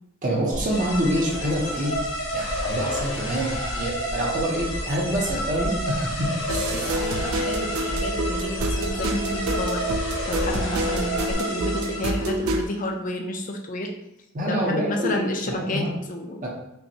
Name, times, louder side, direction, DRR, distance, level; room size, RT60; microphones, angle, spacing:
voice 1, 0.2-1.9 2.3-6.3 14.3-15.2 15.4-15.9 16.4-16.5, right 1 dB, 40° right, -3 dB, 0.7 m, -26 dB
sound 1, 0.5-11.3, equal, 90° left, 0.6 m, -35 dB
sound 2, 0.7-12.4, equal, 70° left, 1.1 m, -31 dB
voice 2, 6.5-9.9 10.3-13.9 14.5-16.4, left 1 dB, 40° left, 3 dB, 0.5 m, -30 dB
sound 3, 6.5-12.7, right 1 dB, 90° right, 0.4 m, -28 dB
5.5 x 2.2 x 2.7 m, 0.84 s
head